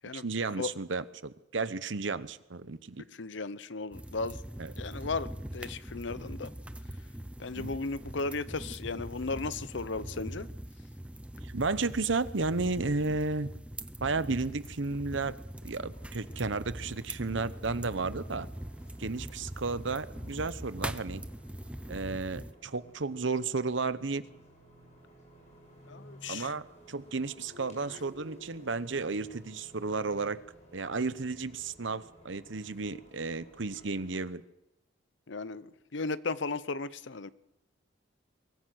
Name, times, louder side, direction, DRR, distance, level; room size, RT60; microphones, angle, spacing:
voice 1, 0.1-3.0 4.6-4.7 7.5-7.7 11.4-13.5 14.0-15.4 15.6-18.5 19.0-21.2 21.9-24.2 26.3-30.4 30.7-34.4, right 3 dB, 70° right, 14 dB, 0.9 m, -33 dB
voice 2, 3.2-4.4 4.8-6.5 7.4-10.5 25.9-26.5 35.3-37.3, left 3 dB, 65° left, 16 dB, 0.8 m, -35 dB
sound 1, 3.9-22.5, right 1 dB, 5° right, 0.6 m, -42 dB
sound 2, 15.9-34.3, right 1 dB, 35° left, 7.4 m, -56 dB
23.0 x 14.5 x 7.8 m, 0.92 s
head